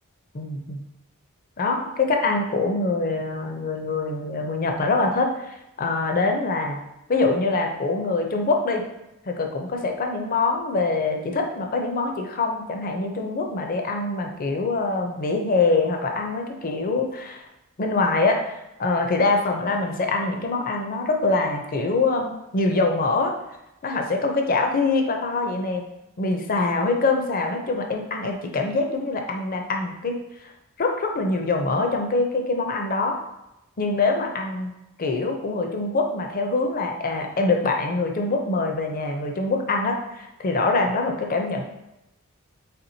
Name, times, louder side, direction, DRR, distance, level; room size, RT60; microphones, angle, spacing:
voice 1, 0.3-0.8 1.6-6.8 7.1-8.9 9.3-17.5 17.8-23.3 23.8-25.8 26.2-30.5 30.8-33.2 33.8-34.7 35.0-41.6, left 3 dB, 40° left, 3 dB, 0.5 m, -24 dB
4.3 x 3.4 x 2.7 m, 0.93 s
head